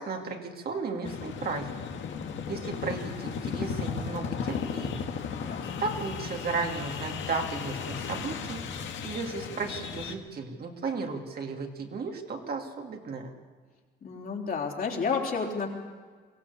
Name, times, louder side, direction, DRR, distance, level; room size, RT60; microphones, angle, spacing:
voice 1, 0.0-1.9 2.5-5.2 5.8-8.6 9.0-13.3, right 4 dB, 50° right, 2 dB, 2.4 m, -34 dB
sound 1, 1.0-10.1, left 6 dB, 70° left, 1.8 m, -35 dB
voice 2, 2.1-2.4 5.4-5.8 14.0-15.7, left 5 dB, 45° left, 0 dB, 3.7 m, -32 dB
23.0 x 16.0 x 8.3 m, 1.5 s
cardioid pair, 120°, 20 cm